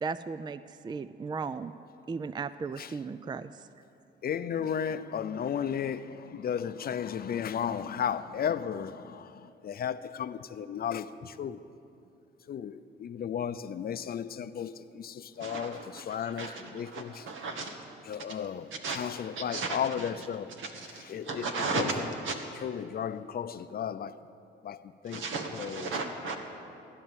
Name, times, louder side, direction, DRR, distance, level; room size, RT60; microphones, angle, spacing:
voice 1, 0.0-1.7 2.1-3.7, right 5 dB, 20° right, 0.4 m, -36 dB
voice 2, 4.2-9.3 9.6-11.6 12.5-17.2 18.1-20.5 21.1-21.5 21.7-21.9 22.6-24.1 24.6-24.8 25.0-25.2 25.5-25.9, left 8 dB, 50° left, 0.6 m, -34 dB
voice 3, 15.4-17.7 18.7-19.0 19.4-20.1 20.6-22.0 22.2-22.3 25.1-26.4, right 4 dB, 80° right, 1.9 m, -35 dB
15.5 x 11.0 x 7.5 m
cardioid pair, 90°, 20 cm